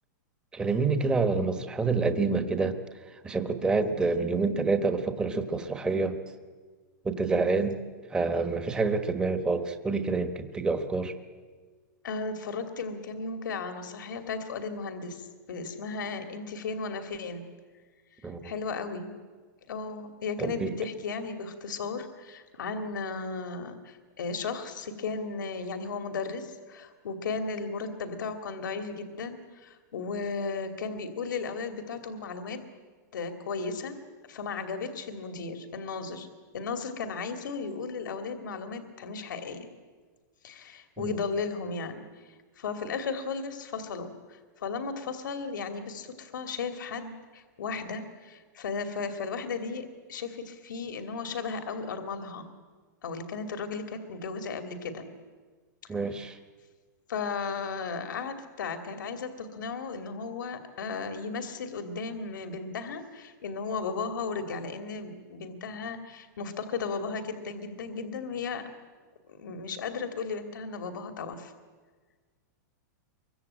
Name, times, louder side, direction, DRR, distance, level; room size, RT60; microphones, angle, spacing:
voice 1, 0.5-2.7 3.2-6.2 7.0-7.8 8.1-11.1 18.2-18.4 20.4-20.7 41.0-41.1 55.9-56.4, right 4 dB, 10° right, 8 dB, 1.2 m, -27 dB
voice 2, 12.0-17.4 18.4-19.1 19.7-32.6 33.1-34.0 34.3-36.3 36.5-39.7 40.4-42.0 42.6-52.5 53.0-55.0 55.8-56.3 57.1-68.7 69.3-71.5, left 4 dB, 90° left, 7 dB, 2.7 m, -35 dB
24.5 x 23.0 x 8.9 m, 1.5 s
supercardioid pair, 165°, 10 cm